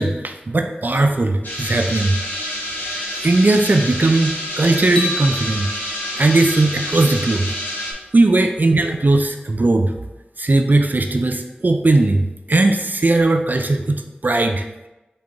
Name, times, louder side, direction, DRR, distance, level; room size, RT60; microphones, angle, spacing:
voice 1, 0.0-2.2 3.2-5.6 6.2-7.5 8.1-9.9 10.4-14.7, right 2 dB, 50° right, 5 dB, 0.4 m, -18 dB
sound 1, 1.4-7.9, left 1 dB, 55° left, 1.6 m, -28 dB
sound 2, 5.0-7.2, left 2 dB, 20° left, 0.8 m, -30 dB
3.7 x 3.7 x 3.9 m, 1.0 s
wide cardioid pair, 40°, 4 cm